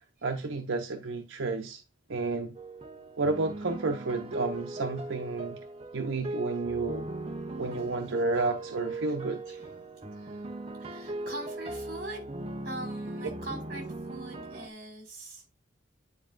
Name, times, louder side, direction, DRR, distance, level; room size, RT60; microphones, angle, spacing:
voice 1, 0.2-1.8 2.1-2.6 3.2-5.6 5.9-7.1 7.6-9.4, right 3 dB, 85° right, 0.7 m, -31 dB
sound 1, 2.5-14.7, right 2 dB, 30° right, 0.7 m, -39 dB
voice 2, 9.5-10.4 10.8-12.3 12.6-15.4, right 1 dB, 50° right, 4.6 m, -43 dB
9.6 x 4.7 x 2.5 m
head